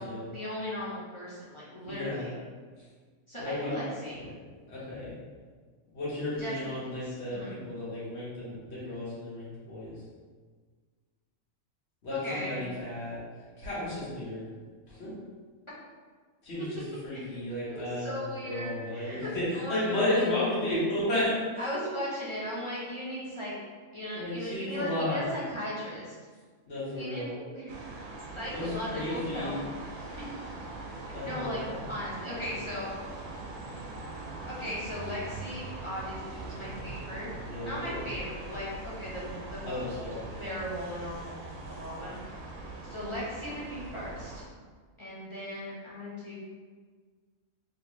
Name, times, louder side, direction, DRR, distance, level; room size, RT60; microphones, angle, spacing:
voice 1, 0.0-2.3 3.3-4.2 6.4-6.6 7.0-7.6 12.1-12.8 17.1-20.3 21.6-23.5 23.9-26.2 27.0-27.7 28.4-29.6 31.2-31.6 31.9-33.2 34.5-37.3 37.6-40.0 40.4-41.4 41.7-42.2 42.9-44.4 45.0-46.3, equal, 30° left, -9 dB, 0.7 m, -37 dB
voice 2, 1.8-2.3 3.4-3.7 4.7-5.1 5.9-10.0 12.0-13.2 13.6-14.4 14.9-15.1 16.4-21.7 24.1-25.2 26.7-27.3 28.5-29.6 31.1-31.8 37.4-38.0 39.6-40.2, left 1 dB, 55° left, -9 dB, 1.5 m, -33 dB
sound 1, 27.7-44.4, right 2 dB, 80° right, 1.0 m, -42 dB
3.2 x 3.1 x 3.1 m, 1.5 s
omnidirectional pair, 1.4 m